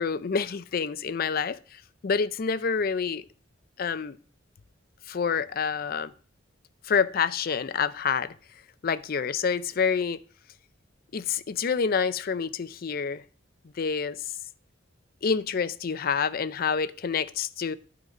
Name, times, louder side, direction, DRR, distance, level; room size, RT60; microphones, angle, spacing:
voice 1, 0.0-3.2 3.8-4.2 5.1-6.1 6.8-8.3 8.8-10.2 11.1-13.2 13.8-14.3 15.2-17.7, left 6 dB, 50° left, 0.5 m, -27 dB
12.0 x 4.0 x 5.2 m
head